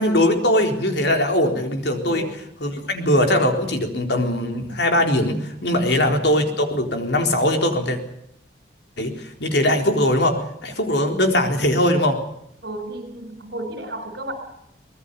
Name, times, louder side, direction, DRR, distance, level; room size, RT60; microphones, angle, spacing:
voice 1, 0.0-2.3 2.6-8.0 9.0-12.2, left 1 dB, 65° left, 4 dB, 4.0 m, -20 dB
voice 2, 12.6-14.3, right 1 dB, 60° right, 10 dB, 6.3 m, -33 dB
24.5 x 20.0 x 7.0 m, 0.76 s
head